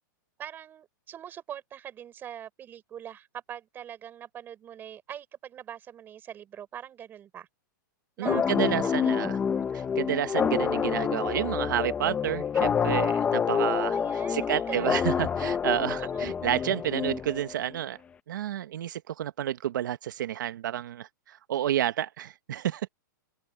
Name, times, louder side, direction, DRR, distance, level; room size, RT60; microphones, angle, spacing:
voice 1, 0.4-7.5 8.2-9.1 9.5-9.6 10.7-11.1 13.5-14.9 15.9-16.4, right 10 dB, 20° right, 4.0 m, -43 dB
sound 1, 8.2-17.7, left 7 dB, 10° left, 0.7 m, -27 dB
voice 2, 8.2-9.4 9.7-14.0 14.3-18.0 18.3-22.9, right 11 dB, 70° right, 1.1 m, -30 dB
open air
hypercardioid pair, 155°, 11 cm